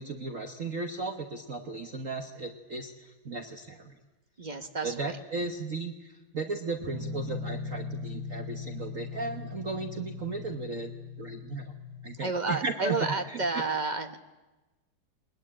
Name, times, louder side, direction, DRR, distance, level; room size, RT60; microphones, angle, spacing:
voice 1, 0.0-3.9 4.8-10.9 11.2-11.8 12.0-13.4, right 3 dB, 45° right, 4 dB, 1.4 m, -35 dB
voice 2, 4.4-5.2 6.8-6.9 12.2-14.2, right 3 dB, 30° right, 6 dB, 0.9 m, -31 dB
Guitar, 6.9-12.2, left 4 dB, 15° right, 3.3 m, -39 dB
22.0 x 20.5 x 8.8 m, 1.1 s
omnidirectional pair, 2.3 m